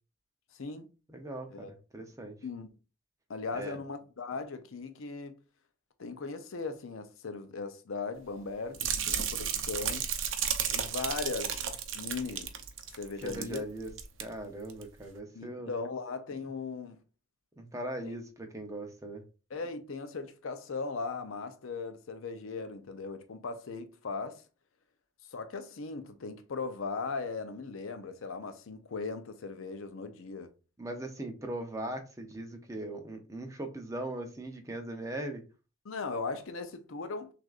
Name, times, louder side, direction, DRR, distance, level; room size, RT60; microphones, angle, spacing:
voice 1, 0.5-0.9 1.5-1.7 2.4-2.7 3.3-5.4 6.0-10.1 10.7-11.7 11.9-12.5 12.9-13.6 15.3-17.0 18.0-18.1 19.5-24.4 25.3-30.5 35.9-37.3, left 4 dB, 75° left, 0.6 m, -38 dB
voice 2, 1.1-2.4 3.5-3.8 13.2-13.9 14.2-15.7 17.6-19.2 30.8-35.4, right 1 dB, 15° right, 0.6 m, -39 dB
sound 1, 8.7-13.6 13.9-14.2 14.7-14.8, right 8 dB, 65° right, 0.6 m, -33 dB
6.2 x 2.5 x 2.4 m
head